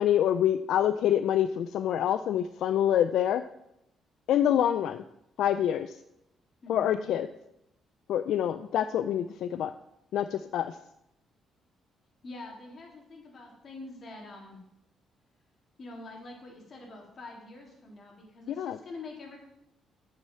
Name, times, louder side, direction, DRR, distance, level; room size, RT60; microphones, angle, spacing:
voice 1, 0.0-3.4 4.3-5.0 5.4-6.0 6.7-7.3 8.1-9.7 10.1-10.8 18.6-18.8, left 10 dB, 80° left, 11 dB, 0.4 m, -26 dB
voice 2, 6.6-7.0 12.2-14.6 15.8-19.4, left 2 dB, 45° left, 0 dB, 3.5 m, -45 dB
8.3 x 6.6 x 7.5 m, 0.83 s
cardioid pair, 90°, 0 cm